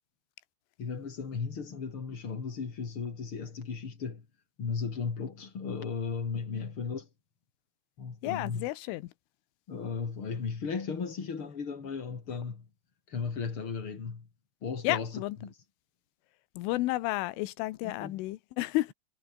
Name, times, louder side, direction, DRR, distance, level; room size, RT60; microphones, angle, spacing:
voice 1, 0.8-4.2 4.6-7.1 8.0-8.7 9.7-12.7 13.1-14.3 14.6-15.5 17.8-18.2, left 5 dB, 30° left, 3.1 m, -36 dB
voice 2, 8.2-9.1 14.8-15.4 16.6-18.9, left 18 dB, 80° left, 3.4 m, -31 dB
omnidirectional pair, 5.9 m